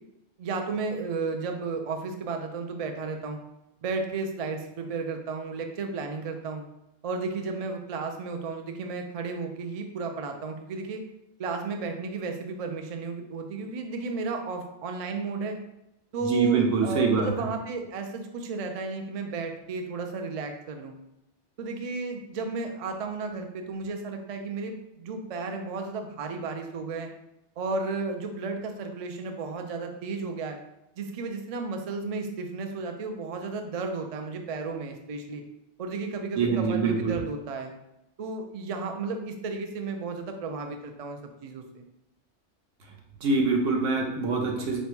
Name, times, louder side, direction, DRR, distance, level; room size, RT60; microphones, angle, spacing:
voice 1, 0.4-3.4 3.8-6.6 7.0-11.0 11.4-15.6 16.1-20.9 21.6-27.1 27.6-30.6 31.0-35.4 35.8-37.7 38.2-41.9, right 4 dB, 60° right, 4 dB, 0.3 m, -33 dB
voice 2, 16.2-17.3 36.4-37.2 43.2-44.8, right 4 dB, 85° right, 1 dB, 1.1 m, -24 dB
4.2 x 2.2 x 4.4 m, 0.85 s
omnidirectional pair, 1.2 m